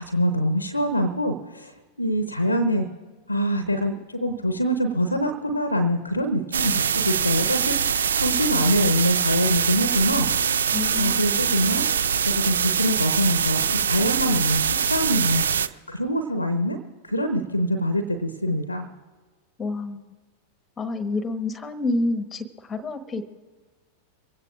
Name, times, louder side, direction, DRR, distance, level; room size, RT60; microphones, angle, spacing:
voice 1, 0.0-1.7 2.0-2.9 3.3-10.3 11.0-11.8 12.3-16.8 17.0-18.9, equal, 85° left, 9 dB, 0.9 m, -24 dB
sound 1, 6.5-15.7, right 7 dB, 65° right, 0.4 m, -23 dB
voice 2, 10.7-11.3 19.6-20.1 20.8-23.2, left 2 dB, 20° left, 11 dB, 1.2 m, -28 dB
24.0 x 16.5 x 2.5 m, 1.4 s
figure-of-eight pair, 90°, 0 cm